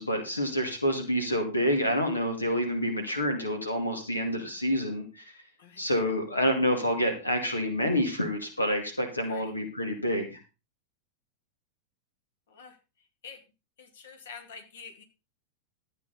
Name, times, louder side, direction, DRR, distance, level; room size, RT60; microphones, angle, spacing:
voice 1, 0.0-5.2 5.8-10.4, equal, 80° left, 5 dB, 2.2 m, -28 dB
voice 2, 5.6-5.9 9.3-9.5 12.5-12.8 13.2-13.4 13.8-15.0, left 6 dB, 60° left, 6 dB, 2.3 m, -47 dB
13.5 x 9.1 x 4.0 m, 0.30 s
figure-of-eight pair, 90°, 0 cm